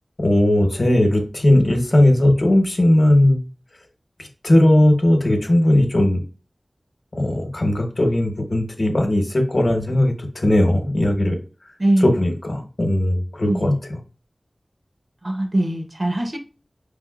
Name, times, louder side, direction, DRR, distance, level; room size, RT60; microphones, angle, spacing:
voice 1, 0.2-3.4 4.2-6.2 7.1-11.4 12.0-13.9, left 1 dB, 55° left, 0.9 m, -18 dB
voice 2, 11.8-12.2 13.4-13.8 15.2-16.4, right 1 dB, 45° right, 0.9 m, -21 dB
5.3 x 3.5 x 2.3 m
wide cardioid pair, 65°, 0 cm